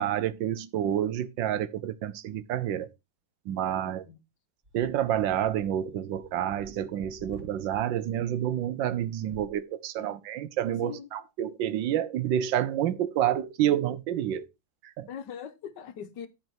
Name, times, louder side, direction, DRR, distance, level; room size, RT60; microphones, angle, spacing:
voice 1, 0.0-2.9 3.5-4.0 4.7-14.5 14.8-15.1, right 11 dB, 80° right, 1.4 m, -29 dB
voice 2, 3.8-4.2 10.0-10.3 10.8-11.1 15.1-16.3, left 8 dB, 65° left, 1.4 m, -41 dB
sound 1, 4.6-7.8 9.2-9.5, right 3 dB, 25° right, 2.7 m, -51 dB
10.5 x 4.5 x 4.5 m
omnidirectional pair, 2.1 m